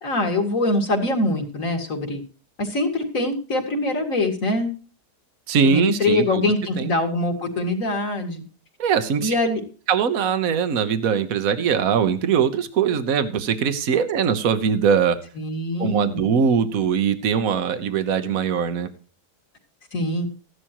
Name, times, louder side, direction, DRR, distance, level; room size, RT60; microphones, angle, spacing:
voice 1, 0.0-2.2 2.6-4.7 5.6-8.4 9.2-9.6 15.4-16.3 19.9-20.3, left 2 dB, 50° left, 3 dB, 2.9 m, -23 dB
voice 2, 5.5-6.2 6.8-7.0 8.8-9.3 9.9-15.2 15.8-18.9, right 7 dB, 60° right, 10 dB, 1.5 m, -21 dB
15.5 x 11.0 x 3.0 m, 0.37 s
omnidirectional pair, 1.8 m